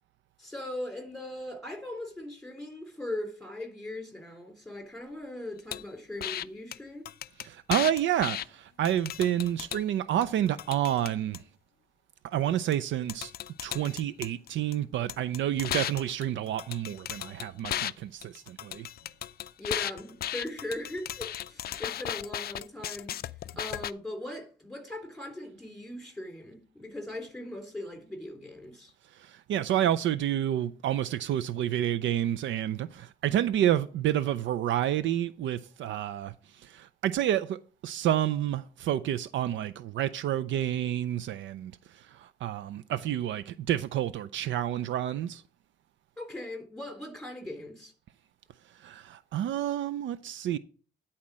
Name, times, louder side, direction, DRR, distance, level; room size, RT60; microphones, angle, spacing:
voice 1, 0.4-7.0 19.6-23.2 23.6-28.9 46.2-47.9, left 1 dB, ahead, 3.4 m, -39 dB
sound 1, 5.7-5.8 6.2-6.4 6.7-6.8 7.1-8.5 8.9-9.8 10.2-11.4 12.7-12.8 13.1-14.7 15.1-17.9 18.2-23.9, left 11 dB, 50° left, 0.4 m, -35 dB
voice 2, 7.4-11.4 12.2-13.3 13.6-18.9 29.1-45.4 48.8-50.6, right 11 dB, 70° right, 0.5 m, -29 dB
10.5 x 4.3 x 6.1 m
cardioid pair, 90°, 20 cm